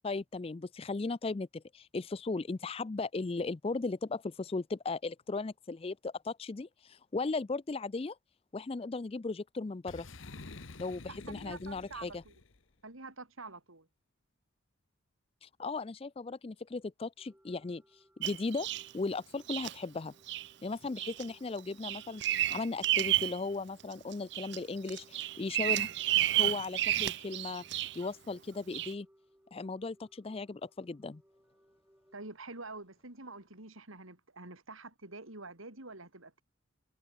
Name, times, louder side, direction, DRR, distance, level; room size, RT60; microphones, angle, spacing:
voice 1, 0.0-8.2 8.5-10.1 10.8-12.2 15.4-17.8 18.2-18.7 18.9-20.1 20.6-25.9 26.4-29.1 29.5-31.2, left 3 dB, 30° left, 0.4 m, -37 dB
Boom, 9.9-12.6, left 3 dB, 70° left, 1.3 m, -49 dB
voice 2, 11.1-12.3 12.8-13.9 32.1-36.4, right 3 dB, 80° right, 4.2 m, -47 dB
sound 1, 17.2-32.3, equal, 10° right, 7.0 m, -66 dB
Bird vocalization bird call bird song, 18.2-18.9 19.5-19.7 20.3-20.5 21.0-21.3 21.6-23.4 23.8-24.6 24.9-28.0 28.7-28.9, right 14 dB, 55° right, 0.5 m, -31 dB
head